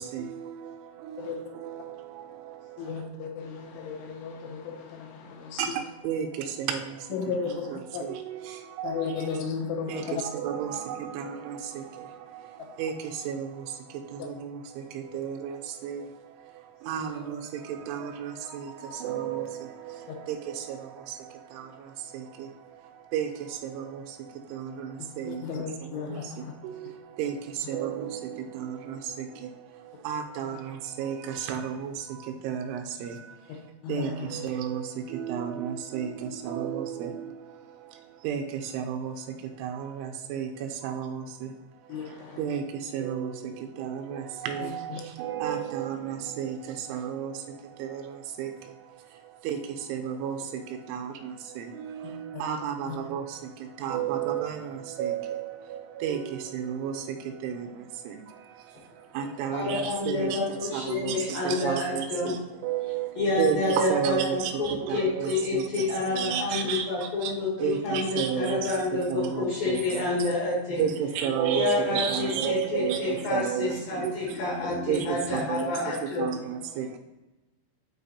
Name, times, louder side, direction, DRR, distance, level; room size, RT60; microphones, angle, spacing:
voice 1, 0.0-3.1 5.6-9.4 9.9-33.6 33.9-41.5 41.9-67.3 67.6-70.3 70.8-74.4 74.9-77.0, right 8 dB, 85° right, 4 dB, 3.0 m, -33 dB
voice 2, 2.8-5.6 7.1-8.0 8.8-10.2 14.2-14.3 16.9-17.1 25.3-26.5 33.8-34.4 41.9-42.4 44.9-45.0, left 5 dB, 85° left, 3 dB, 3.0 m, -34 dB
voice 3, 59.5-62.3 63.2-70.8 71.5-76.3, left 3 dB, 65° left, -4 dB, 2.5 m, -29 dB
8.5 x 3.9 x 2.8 m, 1.0 s
omnidirectional pair, 5.5 m